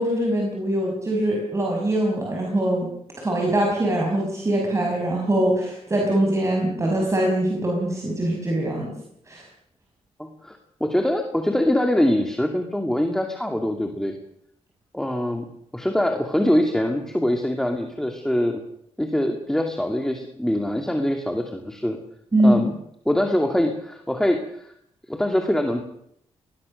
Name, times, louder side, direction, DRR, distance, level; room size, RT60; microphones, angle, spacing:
voice 1, 0.0-2.9 3.2-8.9 9.3-9.5 22.3-22.6, right 1 dB, 30° right, -1 dB, 6.0 m, -22 dB
voice 2, 10.2-14.2 14.9-15.5 15.7-18.6 19.0-22.0 22.4-22.7 23.1-24.7 25.1-25.8, left 1 dB, 5° left, 4 dB, 2.5 m, -23 dB
22.0 x 20.5 x 6.6 m, 0.72 s
cardioid pair, 90°, 11 cm